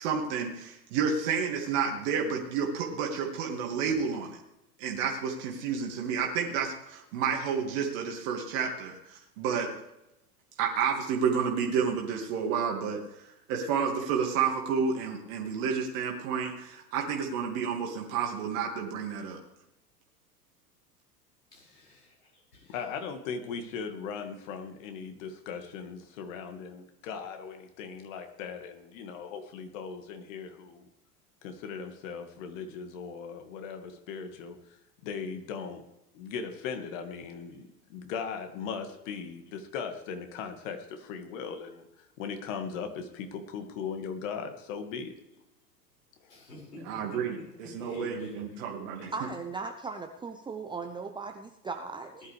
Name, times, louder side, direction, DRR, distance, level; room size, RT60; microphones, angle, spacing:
voice 1, 0.0-4.4 4.8-9.7 10.6-19.4 46.8-47.4 47.7-49.1, right 6 dB, 55° right, 0 dB, 2.3 m, -30 dB
voice 2, 21.5-23.1 37.3-37.6 43.1-43.2 46.3-48.6 48.9-49.1 52.2-52.3, left 2 dB, 80° left, -5 dB, 5.8 m, -49 dB
voice 3, 22.7-30.9 31.4-34.6 35.0-35.8 36.1-45.1 46.2-46.4, left 6 dB, 55° left, 6 dB, 2.1 m, -38 dB
voice 4, 49.1-52.3, right 4 dB, 10° right, 4 dB, 0.7 m, -38 dB
19.5 x 11.0 x 3.4 m, 0.89 s
figure-of-eight pair, 90°, 47 cm